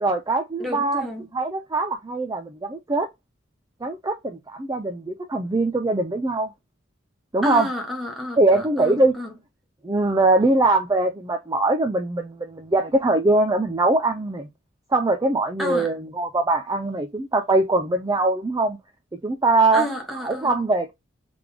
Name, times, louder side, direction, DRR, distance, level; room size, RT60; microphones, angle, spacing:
voice 1, 0.0-1.1 1.3-3.1 3.8-6.5 7.3-7.7 8.4-9.1 9.8-14.5 14.9-18.8 19.2-19.9 20.2-20.9, right 2 dB, 20° right, 0.4 m, -22 dB
voice 2, 0.6-1.3 7.4-9.3 15.6-15.9 19.7-20.6, left 1 dB, ahead, 1.2 m, -31 dB
3.4 x 3.4 x 3.4 m
head